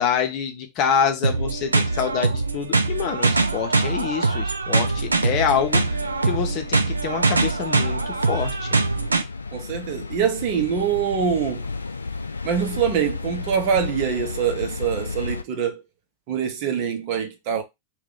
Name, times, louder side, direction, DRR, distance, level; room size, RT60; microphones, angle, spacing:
voice 1, 0.0-5.9 6.2-8.7, left 7 dB, 40° left, 0.7 m, -26 dB
sound 1, 1.2-9.2, right 3 dB, 80° right, 0.4 m, -23 dB
sound 2, 4.9-15.4, left 4 dB, 75° left, 0.3 m, -33 dB
voice 2, 9.5-11.6 12.4-15.8 16.3-17.6, right 7 dB, 45° right, 0.7 m, -24 dB
2.8 x 2.3 x 3.8 m
figure-of-eight pair, 90°, 0 cm